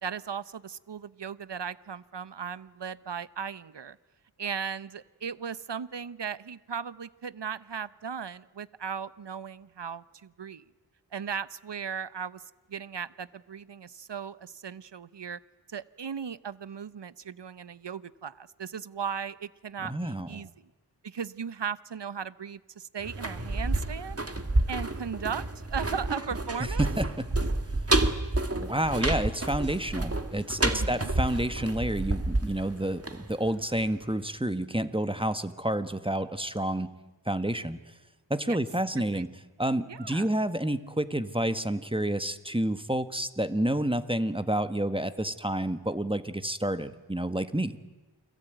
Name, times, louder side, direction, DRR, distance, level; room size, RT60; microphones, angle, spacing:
voice 1, 0.0-4.0 4.4-10.6 11.1-12.4 12.7-15.4 15.7-20.7 21.0-24.2 24.7-26.9 30.7-31.1 38.5-38.6 39.1-39.2 39.9-40.3, right 7 dB, 65° right, 16 dB, 1.0 m, -37 dB
voice 2, 19.8-20.5 26.6-27.3 28.6-36.9 37.2-37.8 38.3-39.3 39.6-47.8, right 1 dB, 10° right, 11 dB, 1.5 m, -29 dB
sound 1, 23.0-33.8 34.1-34.2, right 2 dB, 30° right, 2.0 m, -29 dB
29.5 x 22.0 x 9.2 m, 1.1 s
wide cardioid pair, 55°, 44 cm